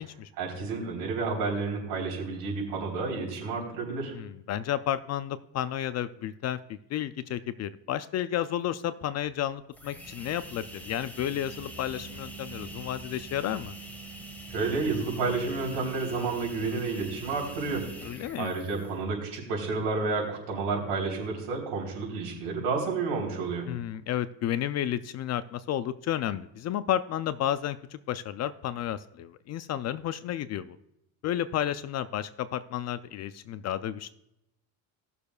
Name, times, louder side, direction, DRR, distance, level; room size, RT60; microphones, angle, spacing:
voice 1, 0.4-4.1 14.5-18.1 18.4-23.7, right 4 dB, 75° right, -1 dB, 3.7 m, -30 dB
voice 2, 4.1-13.8 18.0-18.6 23.7-30.8 31.2-34.1, left 11 dB, 40° left, 13 dB, 0.4 m, -32 dB
sound 1, 9.7-19.1, right 2 dB, 5° left, 1.6 m, -43 dB
19.0 x 6.7 x 2.3 m, 0.82 s
cardioid pair, 120°, 43 cm